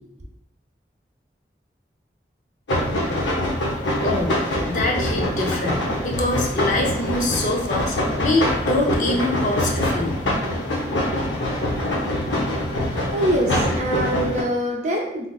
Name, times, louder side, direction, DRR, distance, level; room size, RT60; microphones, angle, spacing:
sound 1, 2.7-14.4, left 1 dB, 80° left, 0.7 m, -24 dB
voice 1, 4.0-4.4 4.6-8.0 8.2-10.2, left 2 dB, 45° left, 0 dB, 0.5 m, -24 dB
voice 2, 13.1-15.3, right 1 dB, 40° right, -1 dB, 0.6 m, -24 dB
3.5 x 2.5 x 2.3 m, 0.76 s
head